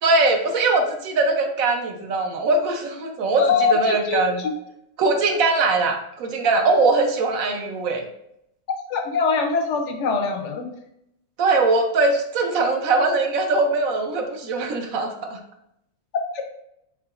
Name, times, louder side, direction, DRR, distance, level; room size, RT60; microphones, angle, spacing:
voice 1, 0.0-4.5 5.0-8.0 11.4-15.4, right 3 dB, 70° right, 4 dB, 1.1 m, -21 dB
voice 2, 3.4-4.5 8.9-10.7 16.1-16.4, left 5 dB, 65° left, 5 dB, 0.8 m, -23 dB
4.9 x 3.7 x 2.4 m, 0.78 s
omnidirectional pair, 1.5 m